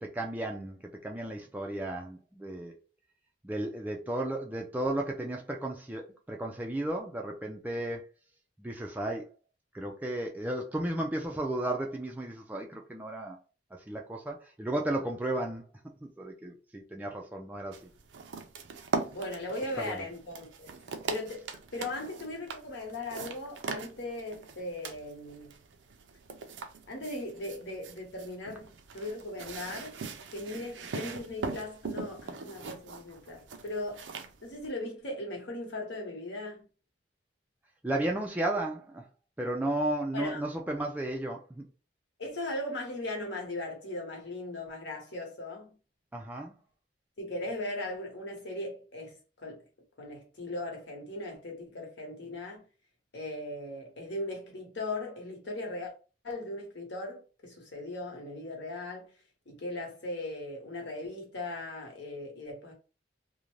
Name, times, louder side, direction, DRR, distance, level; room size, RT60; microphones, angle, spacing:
voice 1, 0.0-2.7 3.4-8.0 8.6-9.3 9.7-13.4 13.9-15.6 16.0-17.8 19.8-20.0 37.8-39.0 39.4-41.7 46.1-46.5, right 1 dB, 10° right, 0.3 m, -34 dB
sound 1, 17.7-34.7, right 4 dB, 80° right, 0.4 m, -41 dB
voice 2, 19.1-20.8 21.1-25.6 26.9-30.0 30.3-34.1 34.4-36.7 40.1-40.4 42.2-45.7 47.2-49.6 50.0-52.6 53.1-55.9 56.2-59.1 59.5-62.7, left 2 dB, 75° left, 1.1 m, -38 dB
2.5 x 2.1 x 3.1 m
head